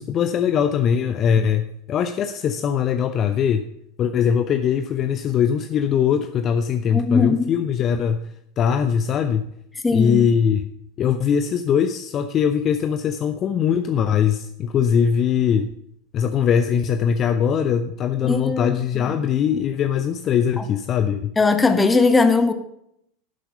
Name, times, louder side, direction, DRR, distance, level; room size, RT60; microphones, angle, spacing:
voice 1, 0.0-3.7 4.0-9.4 9.9-10.7 11.0-15.7 16.1-21.3, left 8 dB, 35° left, 0.6 m, -21 dB
voice 2, 6.9-7.5 9.8-10.3 18.2-19.1 20.6-20.7 21.4-22.5, left 4 dB, 15° left, 1.3 m, -19 dB
11.5 x 7.4 x 6.8 m
figure-of-eight pair, 85°, 0 cm